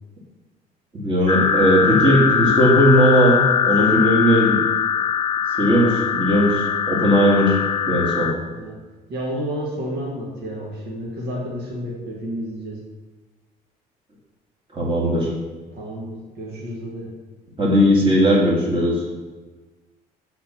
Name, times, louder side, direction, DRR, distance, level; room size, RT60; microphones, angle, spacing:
voice 1, 0.9-3.4 3.7-4.6 5.6-7.6 7.9-8.3 14.7-15.3 17.6-19.0, equal, 30° right, -4 dB, 2.4 m, -17 dB
sound 1, 1.3-8.3, left 7 dB, 30° left, 0.5 m, -21 dB
voice 2, 9.1-12.8 15.7-17.1, equal, 80° right, -2 dB, 1.8 m, -30 dB
7.4 x 4.4 x 5.9 m, 1.3 s
cardioid pair, 110°, 17 cm